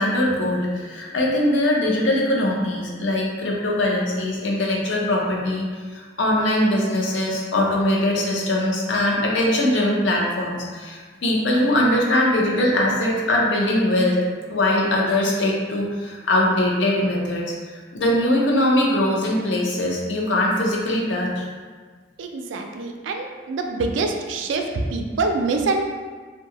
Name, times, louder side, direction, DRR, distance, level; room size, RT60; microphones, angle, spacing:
voice 1, 0.0-5.6 5.9-14.2 14.5-21.4, left 1 dB, 75° left, -2 dB, 0.6 m, -21 dB
voice 2, 22.2-25.8, right 3 dB, 85° right, 4 dB, 0.3 m, -25 dB
2.7 x 2.2 x 2.8 m, 1.5 s
head